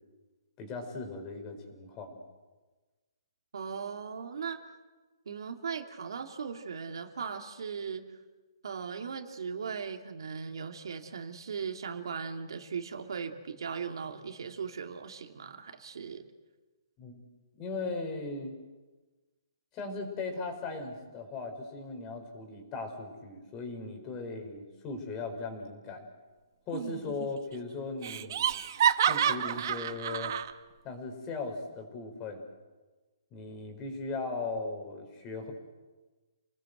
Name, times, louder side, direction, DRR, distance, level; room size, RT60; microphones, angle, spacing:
voice 1, 0.6-2.2 17.0-17.2 17.5-18.6 19.7-26.0 26.7-28.5 29.0-30.3 30.8-32.4 33.3-35.5, left 3 dB, 20° left, 5 dB, 4.8 m, -38 dB
voice 2, 3.5-4.6 5.2-8.1 8.6-16.2, right 6 dB, 70° right, 5 dB, 2.7 m, -38 dB
Laughter, 26.7-27.3 27.5-27.6 28.0-30.5, right 9 dB, 50° right, 1.3 m, -29 dB
29.5 x 20.0 x 8.1 m, 1.2 s
hypercardioid pair, 165°, 2 cm